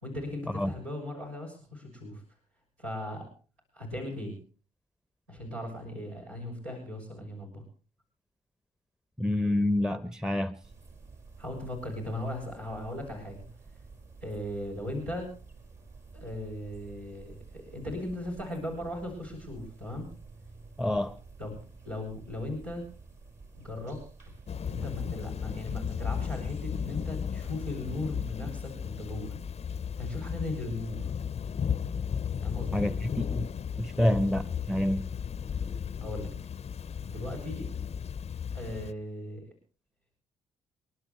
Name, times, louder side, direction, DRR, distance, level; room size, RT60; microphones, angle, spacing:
voice 1, 0.0-2.2 2.8-3.3 3.7-4.4 5.3-7.6 11.4-13.4 14.2-15.3 16.1-20.1 21.4-21.6 21.8-22.8 23.6-24.0 24.6-29.4 30.0-31.1 32.4-32.9 33.9-34.2 36.0-36.3 37.1-37.7 38.5-39.4, left 1 dB, 85° right, 6.6 m, -38 dB
voice 2, 9.2-10.6 20.8-21.2 32.7-32.9 33.3-33.5 33.8-35.0, left 1 dB, 5° right, 0.9 m, -27 dB
sound 1, 10.6-28.0, right 4 dB, 50° right, 5.1 m, -51 dB
Thunder / Rain, 24.5-38.9, left 7 dB, 40° left, 0.7 m, -35 dB
29.5 x 11.5 x 3.2 m
hypercardioid pair, 45°, 16 cm